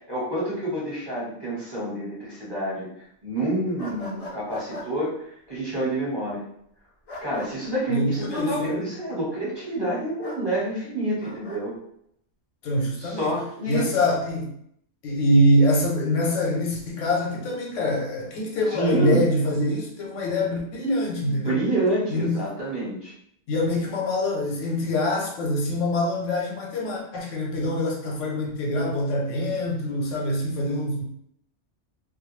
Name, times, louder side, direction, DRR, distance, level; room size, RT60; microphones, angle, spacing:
voice 1, 0.1-2.9 3.2-5.1 5.5-6.4 7.2-11.7 13.0-13.9 18.7-19.2 21.2-23.1, right 1 dB, 25° right, -9 dB, 0.8 m, -28 dB
sound 1, 3.8-4.9 7.1-7.5 10.2-10.4 11.2-11.6, left 1 dB, 60° left, 0.3 m, -38 dB
voice 2, 7.9-8.8 12.6-13.3 13.7-14.5 15.0-21.6 22.1-22.4 23.5-31.0, left 1 dB, 85° left, -1 dB, 1.0 m, -24 dB
2.3 x 2.1 x 3.1 m, 0.71 s
omnidirectional pair, 1.2 m